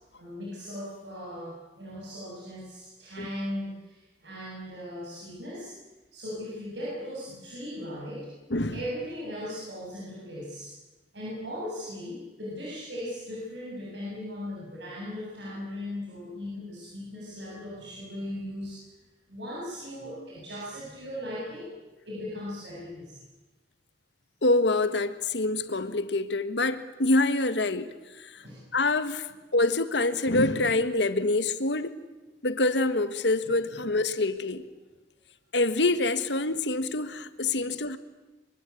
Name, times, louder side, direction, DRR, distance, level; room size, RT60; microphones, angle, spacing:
voice 1, 0.2-5.8 6.1-8.3 8.7-10.7 11.1-18.9 19.3-21.7 22.1-23.2 28.4-28.6 33.7-33.8, left 1 dB, 80° right, 7.8 m, -38 dB
voice 2, 24.4-28.3 28.7-29.3 29.5-31.9 32.4-34.6 35.5-38.0, left 2 dB, 80° left, 1.6 m, -26 dB
24.5 x 24.0 x 8.5 m
head